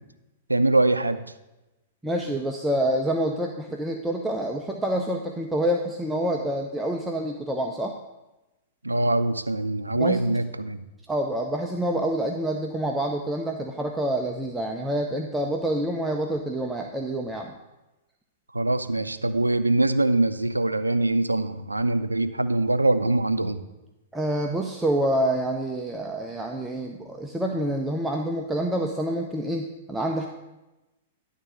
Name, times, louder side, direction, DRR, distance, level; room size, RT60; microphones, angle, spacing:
voice 1, 0.5-1.3 8.8-10.8 18.5-23.6, right 2 dB, 90° right, 10 dB, 0.5 m, -23 dB
voice 2, 2.0-8.0 10.0-10.4 11.1-17.5 24.1-30.3, right 1 dB, 5° right, 1 dB, 0.7 m, -27 dB
11.0 x 3.7 x 7.4 m, 1.0 s
figure-of-eight pair, 105°, 0 cm